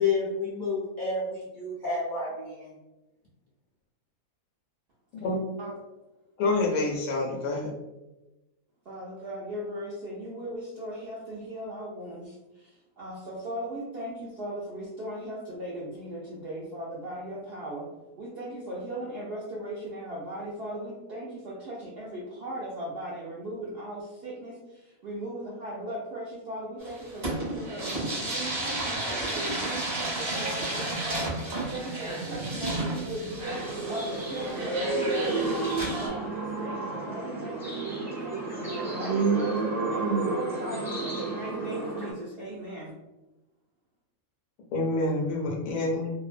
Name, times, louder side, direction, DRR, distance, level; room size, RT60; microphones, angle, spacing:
voice 1, 0.0-2.7, left 4 dB, 55° left, -7 dB, 0.5 m, -30 dB
voice 2, 6.4-7.7 44.7-46.1, left 2 dB, 70° left, -1 dB, 1.0 m, -27 dB
voice 3, 8.9-17.9 18.2-42.9, right 1 dB, 70° right, -5 dB, 0.5 m, -38 dB
sound 1, 26.8-36.1, right 2 dB, 35° right, 0.8 m, -33 dB
sound 2, 33.4-42.1, right 3 dB, 5° right, 0.4 m, -30 dB
2.6 x 2.1 x 2.4 m, 1.0 s
omnidirectional pair, 1.5 m